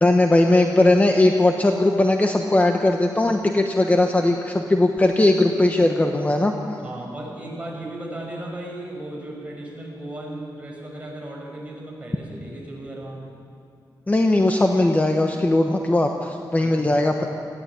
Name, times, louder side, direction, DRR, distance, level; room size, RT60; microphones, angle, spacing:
voice 1, 0.0-6.5 14.1-17.3, left 2 dB, 20° left, 3 dB, 1.1 m, -19 dB
voice 2, 6.8-13.2 16.6-16.7, right 1 dB, 15° right, -2 dB, 6.3 m, -35 dB
19.5 x 16.0 x 8.6 m, 2.6 s
wide cardioid pair, 105°, 8 cm